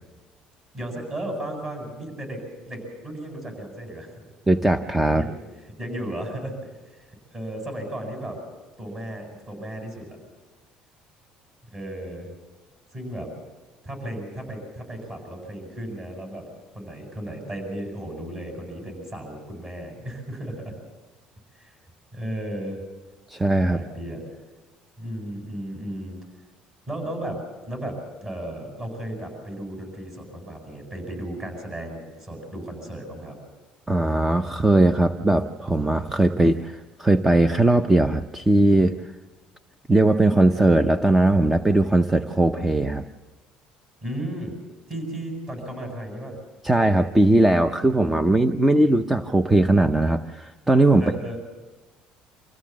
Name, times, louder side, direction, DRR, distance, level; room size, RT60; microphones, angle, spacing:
voice 1, 0.7-4.2 5.1-5.4 5.8-6.5 6.9-7.1 7.3-8.4 8.8-10.2 11.7-12.3 12.9-13.3 13.8-16.4 16.7-20.7 21.6-21.7 22.1-22.8 23.7-24.2 25.0-26.2 26.9-33.4 44.0-44.5 44.9-46.4 51.0-51.4, right 1 dB, 30° right, 3 dB, 7.8 m, -34 dB
voice 2, 4.5-5.2 23.3-23.8 33.9-38.9 39.9-43.1 46.6-51.0, right 2 dB, 10° right, 8 dB, 0.7 m, -19 dB
25.5 x 15.5 x 7.5 m, 1.2 s
cardioid pair, 130°, 3 cm